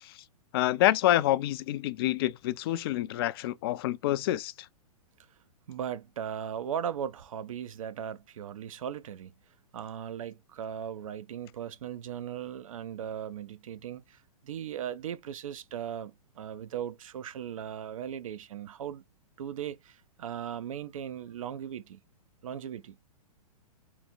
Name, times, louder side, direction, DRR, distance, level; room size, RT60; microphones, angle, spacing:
voice 1, 0.5-4.5, left 14 dB, 40° left, 0.4 m, -27 dB
voice 2, 5.7-9.3 9.7-19.0 19.4-22.0 22.4-23.0, right 9 dB, 60° right, 0.6 m, -38 dB
3.3 x 3.0 x 3.9 m
figure-of-eight pair, 115°, 19 cm